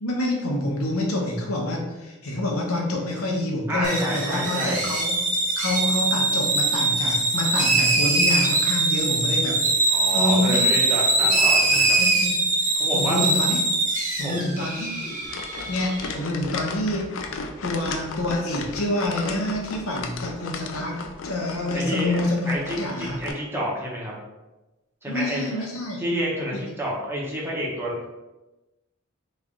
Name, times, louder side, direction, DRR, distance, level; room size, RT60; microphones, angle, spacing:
voice 1, 0.0-5.2 5.6-9.6 10.1-10.7 11.2-12.4 12.9-13.6 14.2-15.2 15.6-17.1 17.6-23.2 25.1-26.0 26.5-26.6, left 1 dB, 80° left, 0 dB, 0.8 m, -27 dB
voice 2, 3.7-4.9 9.9-12.0 12.7-13.2 14.2-14.5 21.7-24.1 25.0-25.6 26.0-28.1, equal, 10° right, -5 dB, 0.8 m, -29 dB
sound 1, 3.8-16.1, right 2 dB, 40° right, 0.9 m, -22 dB
sound 2, 15.2-23.3, left 4 dB, 65° left, 0.4 m, -35 dB
3.2 x 2.5 x 3.7 m, 1.1 s
head